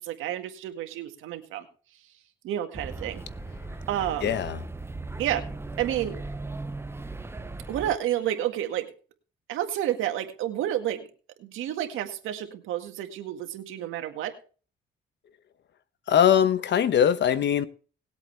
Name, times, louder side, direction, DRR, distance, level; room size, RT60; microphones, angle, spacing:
voice 1, 0.0-1.7 2.4-3.2 3.9-4.3 5.2-5.4 5.8-6.2 7.7-8.9 9.5-11.0 11.4-14.3, right 12 dB, 90° right, 1.9 m, -30 dB
sound 1, 2.7-8.0, right 2 dB, 10° right, 0.9 m, -37 dB
voice 2, 4.2-4.6 16.1-17.7, left 9 dB, 65° left, 1.1 m, -21 dB
19.5 x 8.2 x 3.4 m
cardioid pair, 90°, 20 cm